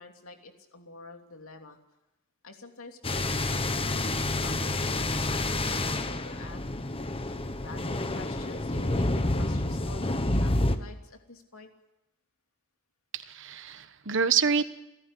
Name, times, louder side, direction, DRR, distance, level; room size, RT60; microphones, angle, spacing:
voice 1, 0.0-1.8 2.4-6.6 7.6-11.7, left 3 dB, 70° left, 4 dB, 3.0 m, -48 dB
sound 1, 3.0-10.8, left 2 dB, 25° left, 1.2 m, -29 dB
voice 2, 13.1-14.7, right 6 dB, 60° right, 12 dB, 1.2 m, -27 dB
30.0 x 14.0 x 10.0 m, 0.93 s
head